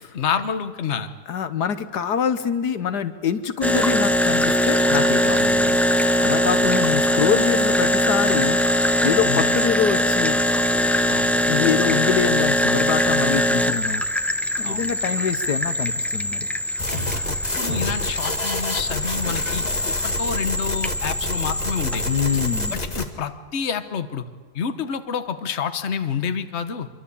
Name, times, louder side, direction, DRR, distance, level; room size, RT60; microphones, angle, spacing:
voice 1, 0.1-1.1 6.4-6.5 9.2-9.5 11.1-11.3 14.6-14.9 17.1-22.1 22.7-24.2 24.5-26.9, left 6 dB, 45° left, 10 dB, 1.3 m, -28 dB
voice 2, 1.3-5.8 6.2-8.6 9.0-10.4 11.5-14.0 14.6-16.5 22.0-22.8, left 8 dB, 75° left, 11 dB, 1.6 m, -25 dB
sound 1, 3.6-22.7, equal, ahead, 0.7 m, -22 dB
sound 2, 16.8-23.1, left 1 dB, 25° left, 2.0 m, -29 dB
25.5 x 23.5 x 8.5 m, 1.5 s
omnidirectional pair, 1.8 m